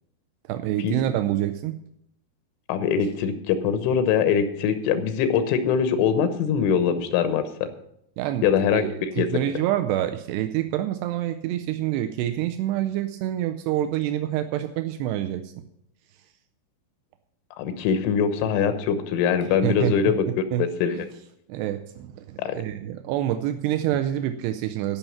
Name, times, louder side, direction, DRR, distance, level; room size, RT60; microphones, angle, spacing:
voice 1, 0.5-1.7 8.2-8.5 8.7-15.5 19.6-20.0 20.5-20.6 20.9-21.0 21.5-25.0, right 12 dB, 85° right, 8 dB, 2.4 m, -27 dB
voice 2, 2.7-7.7 8.4-9.3 17.6-20.3 20.8-21.1 22.4-22.6, left 7 dB, 85° left, 9 dB, 3.5 m, -23 dB
14.5 x 5.6 x 7.1 m, 0.76 s
omnidirectional pair, 5.4 m